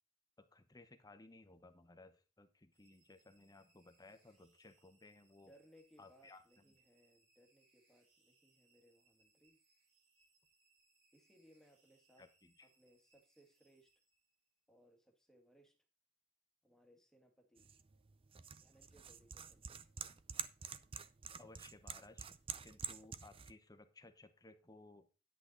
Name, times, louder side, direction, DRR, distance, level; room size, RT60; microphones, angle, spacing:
voice 1, 0.4-5.5 6.0-6.4 12.2-12.7 21.4-22.3 22.6-25.1, left 2 dB, 20° left, 8 dB, 1.0 m, -60 dB
sound 1, 2.7-14.6, right 3 dB, 65° right, 6.2 m, -76 dB
voice 2, 5.5-9.6 11.1-12.3 12.6-13.9 14.7-15.8 16.6-17.7 18.6-19.9, equal, 5° left, 4 dB, 1.7 m, -68 dB
sound 2, 17.6-23.5, right 7 dB, 30° right, 0.5 m, -48 dB
9.9 x 8.4 x 3.9 m, 0.32 s
head